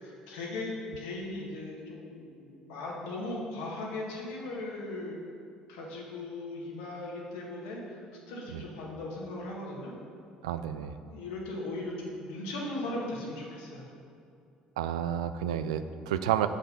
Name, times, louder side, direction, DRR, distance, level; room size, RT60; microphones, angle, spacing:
voice 1, 0.0-0.7 1.0-5.2 5.7-8.0 8.3-9.9 11.1-13.9, left 2 dB, 80° left, -3 dB, 1.7 m, -38 dB
voice 2, 10.4-11.0 14.8-16.5, right 10 dB, 90° right, 11 dB, 0.3 m, -30 dB
7.6 x 5.3 x 5.5 m, 2.5 s
hypercardioid pair, 60°, 3 cm